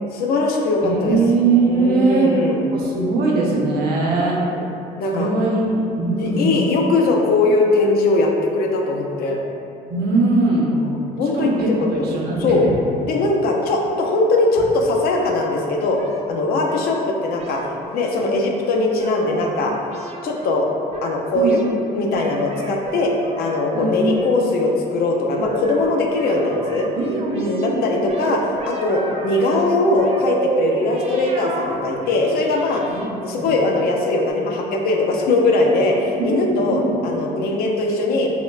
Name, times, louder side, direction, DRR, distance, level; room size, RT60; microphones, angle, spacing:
voice 1, 0.1-1.2 1.7-2.6 4.5-4.6 5.0-5.3 6.2-9.4 10.7-12.1 12.4-12.7 13.0-16.0 16.3-17.6 17.9-19.7 20.2-20.7 21.0-21.6 21.9-26.9 27.3-28.4 28.7-32.8 33.2-38.3, left 2 dB, 65° left, 1 dB, 0.5 m, -20 dB
voice 2, 0.8-2.3 2.7-4.4 5.1-6.7 9.9-10.7 11.3-12.6 21.3-21.6 23.7-24.1 26.2-26.6 27.0-27.8 33.0-33.5 36.2-37.1, right 3 dB, 70° right, -2 dB, 0.7 m, -21 dB
sound 1, 16.0-16.8 17.4-18.5 19.0-20.5 20.9-21.7 22.1-23.9 24.1-25.1 25.4-27.7 28.1-29.7 30.0-33.1, right 3 dB, 40° right, 0.4 m, -30 dB
5.2 x 2.2 x 2.3 m, 2.7 s
cardioid pair, 110°, 17 cm